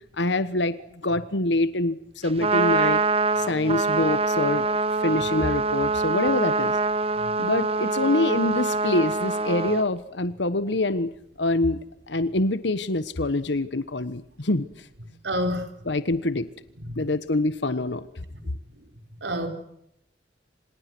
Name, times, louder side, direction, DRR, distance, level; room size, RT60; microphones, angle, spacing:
voice 1, 0.2-0.7 1.0-3.0 3.4-4.6 5.0-6.7 7.4-11.1 11.4-11.8 12.1-14.7 15.9-16.5 17.0-18.0, left 2 dB, 80° left, 13 dB, 1.3 m, -25 dB
Trumpet, 2.2-9.8, right 3 dB, 35° right, 1.0 m, -24 dB
voice 2, 15.2-15.7 16.8-17.0 19.2-19.5, equal, 80° right, 6 dB, 4.8 m, -27 dB
27.5 x 27.5 x 6.2 m, 0.77 s
head